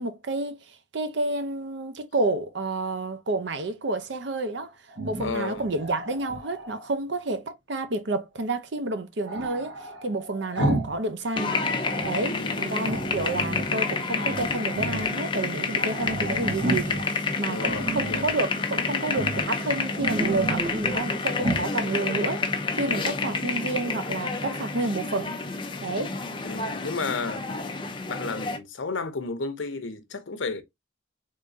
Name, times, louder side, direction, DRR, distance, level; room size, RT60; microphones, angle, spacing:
voice 1, 0.0-4.7 5.0-9.7 10.0-11.6 12.1-25.3 25.8-26.1, right 2 dB, 65° right, 0.7 m, -30 dB
Growling, 4.9-6.9 9.3-11.0 11.3-12.2 12.8-13.7 14.1-15.1 15.5-15.6 15.8-17.1 17.6-18.4 19.1-19.5 19.8-21.1 21.4-21.7, right 2 dB, 80° right, 1.6 m, -32 dB
voice 2, 5.2-5.6 12.2-12.7 17.5-18.3 26.4-27.4 28.1-30.6, left 4 dB, 75° left, 0.8 m, -32 dB
sound 1, 11.4-28.6, left 4 dB, 25° left, 0.6 m, -29 dB
3.7 x 3.6 x 2.6 m
head